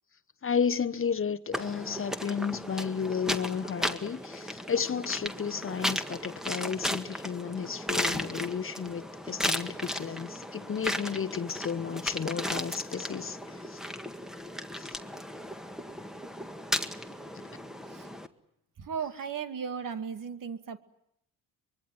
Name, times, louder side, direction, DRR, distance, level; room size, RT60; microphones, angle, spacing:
voice 1, 0.4-13.8 14.8-14.9, left 6 dB, 35° left, 1.0 m, -33 dB
sound 1, 1.5-18.3, equal, ahead, 1.8 m, -35 dB
voice 2, 18.8-20.8, right 6 dB, 55° right, 2.3 m, -36 dB
24.5 x 22.5 x 9.5 m
cardioid pair, 100°, 38 cm